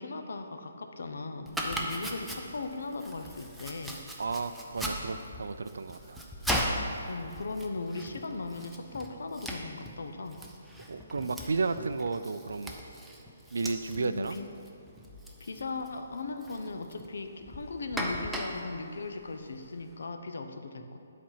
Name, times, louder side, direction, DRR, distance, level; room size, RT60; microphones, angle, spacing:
voice 1, 0.0-4.0 7.1-10.4 14.0-14.5 15.4-21.0, left 3 dB, 75° left, 7 dB, 0.7 m, -38 dB
Domestic sounds home sounds, 1.5-19.9, equal, ahead, 0.4 m, -39 dB
voice 2, 4.2-6.2 10.9-12.7 13.5-14.4, right 4 dB, 80° right, 11 dB, 0.4 m, -33 dB
10.5 x 4.3 x 5.7 m, 2.7 s
hypercardioid pair, 175°, 0 cm